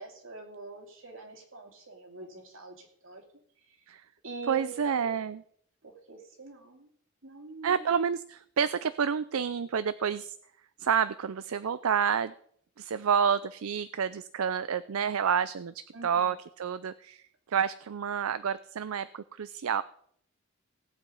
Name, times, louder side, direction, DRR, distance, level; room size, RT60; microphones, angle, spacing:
voice 1, 0.0-3.2 3.7-3.8 4.2-5.1 5.8-6.9 7.2-7.8 15.9-16.3, right 3 dB, 65° right, 3 dB, 2.7 m, -44 dB
voice 2, 4.5-5.4 7.6-10.4 10.8-12.3 12.8-17.2 17.5-19.8, right 7 dB, 80° right, 15 dB, 0.5 m, -29 dB
18.0 x 8.2 x 5.4 m, 0.66 s
head